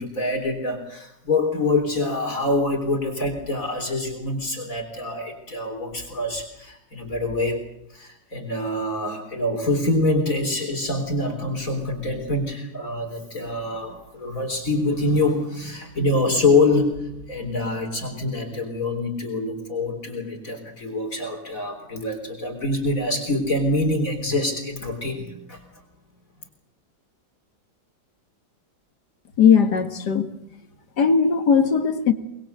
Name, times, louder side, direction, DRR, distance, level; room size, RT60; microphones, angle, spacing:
voice 1, 0.0-7.6 7.9-25.6, left 2 dB, 50° left, 3 dB, 4.2 m, -25 dB
voice 2, 29.4-30.3 31.0-32.1, left 6 dB, 70° left, 8 dB, 2.4 m, -18 dB
24.0 x 21.5 x 8.0 m, 0.78 s
omnidirectional pair, 1.9 m